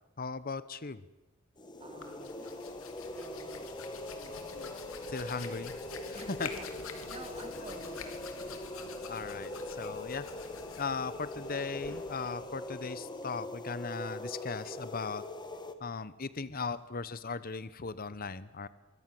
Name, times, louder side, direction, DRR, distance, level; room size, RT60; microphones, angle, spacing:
voice 1, 0.2-1.0 5.1-5.7 6.1-6.5 9.1-10.3 10.8-15.2 15.8-18.7, left 4 dB, 45° left, 15 dB, 1.0 m, -38 dB
sound 1, 1.6-15.7, left 1 dB, 20° left, 1.8 m, -42 dB
Hands, 1.8-13.2, left 5 dB, 80° left, 3.3 m, -48 dB
voice 2, 1.8-2.6 3.1-4.7 6.1-6.7 7.1-8.4, right 2 dB, 30° right, 4 dB, 4.1 m, -50 dB
25.0 x 24.0 x 7.8 m, 0.98 s
head